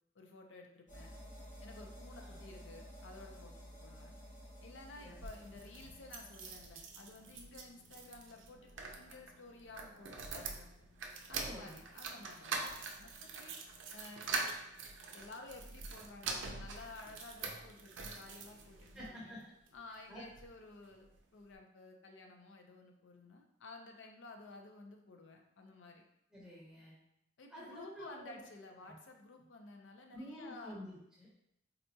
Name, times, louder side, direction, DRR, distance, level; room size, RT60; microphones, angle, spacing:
voice 1, 0.2-1.1 1.6-3.5 3.8-4.1 4.6-10.7 11.3-12.7 13.0-13.6 13.9-14.3 15.1-19.4 19.7-26.0 27.4-30.8, left 2 dB, 80° left, 3 dB, 0.5 m, -53 dB
sound 1, 0.9-6.9, equal, 40° left, 0.8 m, -53 dB
sound 2, 5.1-19.1 19.7-20.5 20.8-20.9 21.1-21.2, right 4 dB, 85° right, 0.4 m, -44 dB
voice 2, 11.3-11.8 18.9-19.4 20.1-20.2 26.3-26.9 27.5-28.4 28.8-28.9 30.1-31.3, equal, 5° right, -7 dB, 0.6 m, -49 dB
4.0 x 2.2 x 2.7 m, 0.77 s
head